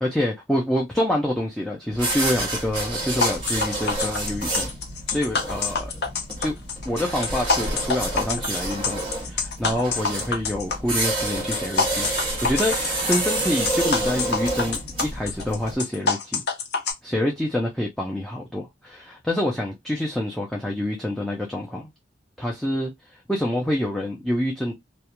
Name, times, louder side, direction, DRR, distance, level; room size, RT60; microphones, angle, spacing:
voice 1, 0.0-4.7 5.1-6.0 6.4-6.5 6.9-12.1 12.4-16.4 17.0-21.9 22.4-24.7, left 1 dB, ahead, 0.4 m, -27 dB
sound 1, 1.9-15.8, right 2 dB, 30° right, 1.3 m, -29 dB
sound 2, 3.2-16.9, left 4 dB, 60° left, 0.5 m, -26 dB
2.3 x 2.1 x 2.9 m
head